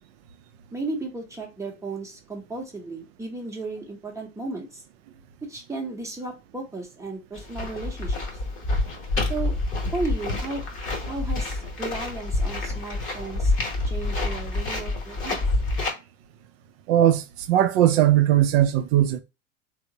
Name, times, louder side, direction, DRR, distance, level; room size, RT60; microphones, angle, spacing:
voice 1, 0.7-4.8 5.5-8.4 9.3-9.5 9.9-10.6 11.0-13.5 13.9-15.4, right 3 dB, 5° right, 0.7 m, -34 dB
sound 1, 7.3-15.9, left 2 dB, 30° left, 0.9 m, -27 dB
voice 2, 16.9-19.2, right 12 dB, 50° right, 0.4 m, -19 dB
3.2 x 2.0 x 2.7 m
hypercardioid pair, 85°, 40 cm